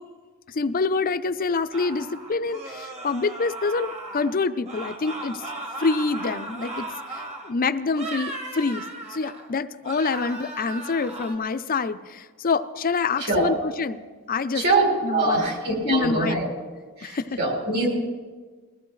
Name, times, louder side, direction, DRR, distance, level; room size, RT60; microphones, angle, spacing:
voice 1, 0.5-5.4 5.8-8.8 9.1-14.0 14.3-14.6 15.0-15.5 15.8-16.5 17.0-17.4, left 4 dB, 40° left, 12 dB, 0.5 m, -26 dB
sound 1, 1.7-4.3 4.6-7.5 7.9-9.5 9.8-11.3, right 2 dB, 30° right, 1.5 m, -36 dB
voice 2, 13.2-13.5 14.5-16.5 17.0-17.9, right 2 dB, 50° right, 0 dB, 3.7 m, -23 dB
21.5 x 14.5 x 3.2 m, 1.4 s
head